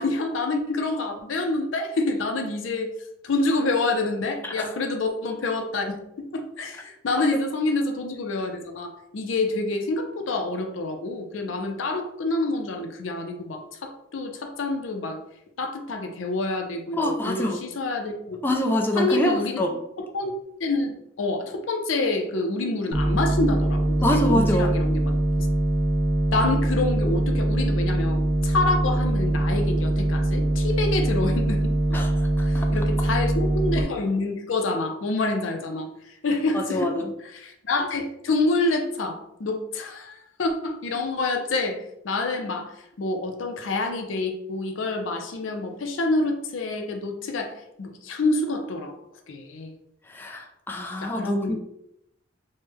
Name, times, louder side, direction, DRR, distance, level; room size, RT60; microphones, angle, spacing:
voice 1, 0.0-2.9 3.2-15.2 15.6-18.4 19.0-19.6 20.0-20.3 20.6-25.1 25.4-25.5 26.3-32.0 32.4-35.9 36.2-36.9 37.3-47.5 47.8-48.9 49.3-49.7 51.0-51.6, left 2 dB, 85° left, 5 dB, 0.5 m, -27 dB
voice 2, 17.0-17.6 18.4-19.7 24.0-24.7 31.9-32.7 36.5-37.1 50.1-51.6, left 1 dB, 10° left, 1 dB, 0.3 m, -25 dB
sound 1, 22.9-33.8, right 1 dB, 35° right, 0.8 m, -23 dB
3.2 x 2.1 x 3.3 m, 0.78 s
head